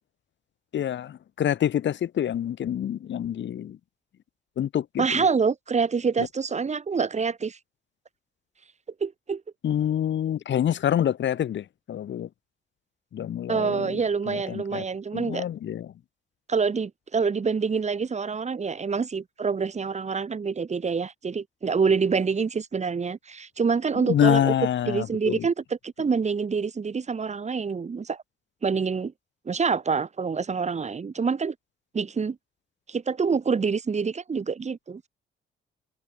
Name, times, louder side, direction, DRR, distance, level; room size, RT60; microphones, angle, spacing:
voice 1, 0.7-3.8 4.6-5.2 6.2-6.3 9.6-12.3 13.1-14.0 14.3-14.8 15.1-15.9 24.0-25.5, left 10 dB, 65° left, 6.9 m, -26 dB
voice 2, 5.0-7.6 9.0-9.4 13.5-15.4 16.5-24.5 24.9-28.2 28.6-29.1 29.4-31.5 31.9-32.4 32.9-35.0, right 5 dB, 35° right, 2.9 m, -26 dB
cardioid pair, 90°, 20 cm